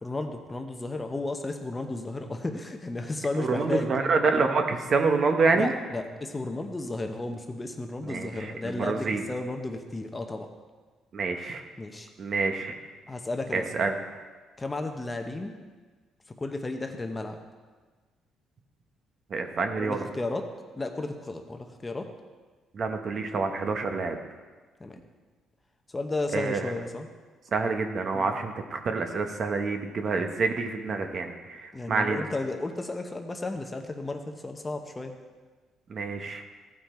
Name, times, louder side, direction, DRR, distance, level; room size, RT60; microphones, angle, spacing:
voice 1, 0.0-3.9 5.5-10.5 11.8-12.1 13.1-13.7 14.6-15.5 16.3-17.4 19.8-20.5 20.8-22.1 24.8-25.0 25.9-27.1 28.1-28.3 31.7-35.1, left 2 dB, 15° left, 5 dB, 0.8 m, -33 dB
voice 2, 3.4-5.7 8.1-9.2 11.1-11.6 12.2-12.8 13.5-13.9 19.3-20.0 22.7-24.2 26.3-26.7 27.5-32.2 35.9-36.4, right 4 dB, 45° right, 5 dB, 1.0 m, -27 dB
15.0 x 5.8 x 4.3 m, 1.4 s
cardioid pair, 125°, 0 cm